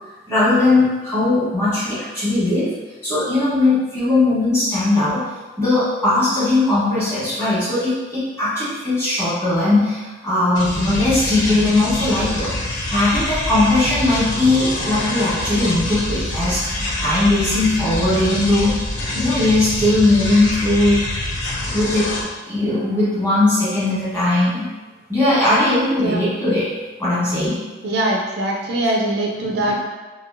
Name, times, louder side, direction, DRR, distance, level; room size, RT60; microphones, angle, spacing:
voice 1, 0.3-2.7 3.0-5.2 5.6-12.5 12.9-18.8 19.1-21.0 21.7-22.1 22.5-24.7 25.1-26.7 27.0-27.6 29.4-29.6, left 2 dB, 15° left, -11 dB, 1.2 m, -19 dB
sound 1, 10.5-22.2, left 1 dB, 75° left, 0.6 m, -25 dB
voice 2, 27.8-29.8, right 1 dB, 55° right, 0 dB, 0.3 m, -22 dB
2.9 x 2.7 x 2.5 m, 1.2 s
head